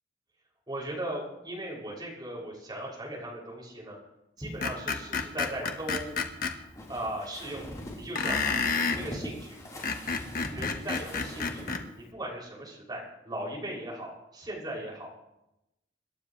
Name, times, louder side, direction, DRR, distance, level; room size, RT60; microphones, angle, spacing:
voice 1, 0.7-4.0 4.4-6.1 6.9-8.5 8.9-9.6 10.0-15.1, right 1 dB, 25° right, -3 dB, 6.5 m, -38 dB
Screech, 4.6-6.5 8.1-9.0 9.7-11.8, left 4 dB, 50° left, 1.4 m, -30 dB
sound 1, 5.5-11.8, left 1 dB, 20° left, 4.1 m, -43 dB
26.5 x 12.5 x 3.3 m, 0.89 s
head